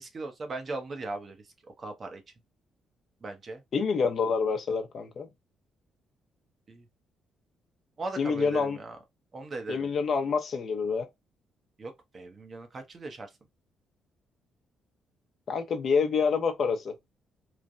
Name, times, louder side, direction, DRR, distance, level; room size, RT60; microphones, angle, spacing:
voice 1, 0.0-1.4 1.8-2.2 3.2-3.6 6.7-6.8 8.0-9.0 9.3-9.9 11.8-13.3, right 3 dB, 40° right, 0.8 m, -38 dB
voice 2, 3.7-5.3 8.2-8.8 9.7-11.1 15.5-16.9, left 5 dB, 55° left, 0.7 m, -27 dB
3.1 x 2.2 x 2.5 m
cardioid pair, 90°, 0 cm